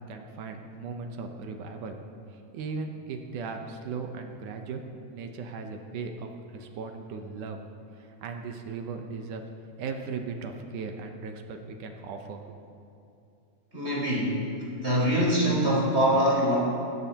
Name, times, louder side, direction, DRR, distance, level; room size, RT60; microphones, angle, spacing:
voice 1, 0.0-2.0 2.5-4.8 5.1-7.6 8.0-9.4 9.8-12.5, right 4 dB, 70° right, 4 dB, 2.1 m, -37 dB
voice 2, 13.7-14.4 14.8-16.5, equal, 15° right, -6 dB, 3.8 m, -23 dB
20.0 x 15.5 x 2.9 m, 2.7 s
omnidirectional pair, 4.3 m